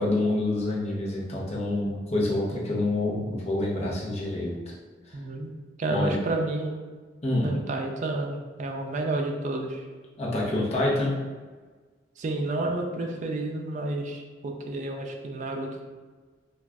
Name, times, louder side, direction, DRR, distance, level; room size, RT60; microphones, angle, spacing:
voice 1, 0.0-4.7 5.1-5.2 5.9-6.1 7.2-7.5 10.2-11.1, left 2 dB, 35° left, -4 dB, 0.7 m, -27 dB
voice 2, 5.1-6.7 7.4-9.8 12.2-15.8, right 2 dB, 45° right, 2 dB, 0.4 m, -30 dB
2.4 x 2.4 x 3.3 m, 1.4 s
head